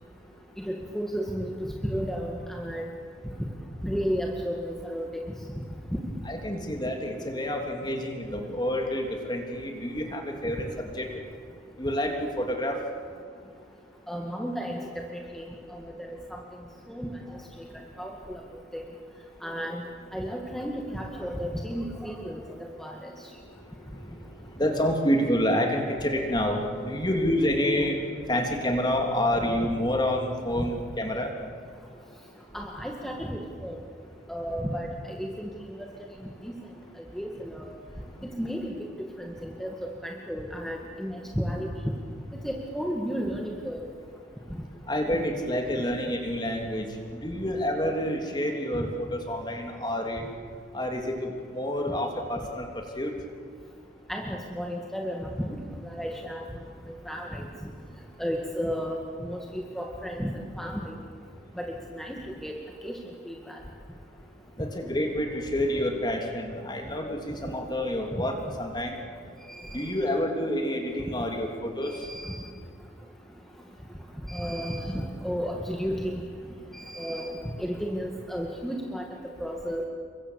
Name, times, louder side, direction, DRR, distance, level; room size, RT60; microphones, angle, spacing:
voice 1, 0.6-2.8 3.8-5.1 5.9-6.0 14.1-14.8 15.3-15.5 15.7-15.9 16.3-16.4 16.9-17.1 18.0-18.4 18.7-18.8 19.4-19.8 20.1-23.1 28.2-28.3 32.5-33.8 34.3-35.5 36.4-36.5 37.1-37.7 38.4-38.7 39.0-39.7 40.0-41.9 42.4-43.9 54.1-55.6 55.8-56.4 57.1-57.5 58.2-61.0 61.6-61.7 61.9-62.6 62.8-63.0 63.3-63.6 69.5-69.8 71.9-72.4 74.3-76.2 76.7-79.0 79.4-79.8, equal, ahead, 0 dB, 2.0 m, -33 dB
voice 2, 6.2-11.1 11.8-12.8 24.6-28.0 28.3-31.3 44.9-50.2 50.7-53.1 64.6-69.0 69.7-71.9, equal, 25° left, 3 dB, 3.1 m, -28 dB
29.0 x 24.0 x 8.3 m, 2.3 s
head